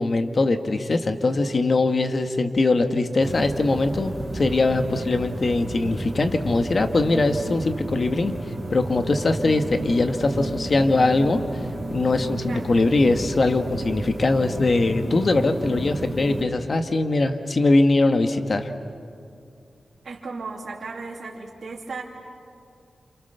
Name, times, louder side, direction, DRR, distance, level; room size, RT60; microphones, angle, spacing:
voice 1, 0.0-8.3 8.7-11.4 11.9-18.7, left 2 dB, 50° left, 7 dB, 1.7 m, -21 dB
sound 1, 3.2-16.4, right 1 dB, 10° right, 4.0 m, -32 dB
voice 2, 20.0-22.0, right 4 dB, 70° right, -3 dB, 3.0 m, -35 dB
28.5 x 28.5 x 6.9 m, 2.4 s
wide cardioid pair, 75°, 0 cm